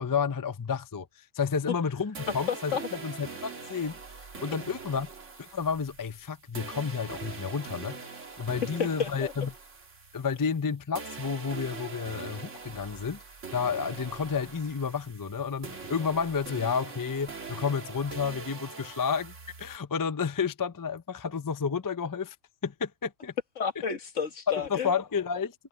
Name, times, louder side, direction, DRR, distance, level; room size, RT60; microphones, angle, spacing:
voice 1, 0.0-2.7 3.0-4.0 4.4-5.1 5.4-9.5 10.1-13.2 13.5-22.4 22.6-23.3 24.7-25.5, left 6 dB, 30° left, 0.3 m, -31 dB
sound 1, 2.1-10.7 10.9-19.8, right 4 dB, 65° right, 2.2 m, -43 dB
voice 2, 2.5-2.9 8.8-9.3 23.6-24.9, left 6 dB, 65° left, 1.7 m, -31 dB
omnidirectional pair, 1.4 m